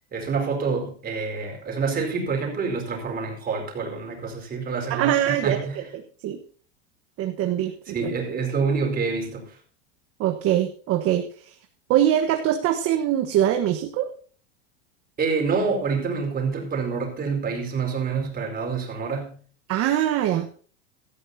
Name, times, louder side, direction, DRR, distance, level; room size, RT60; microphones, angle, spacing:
voice 1, 0.1-5.9 7.9-9.6 15.2-19.4, right 5 dB, 25° right, 4.6 m, -27 dB
voice 2, 4.9-5.6 5.9-6.4 7.2-8.1 10.2-11.5 11.9-14.1 19.7-20.5, right 11 dB, 40° right, 1.3 m, -23 dB
16.5 x 13.5 x 2.8 m
supercardioid pair, 130°, 37 cm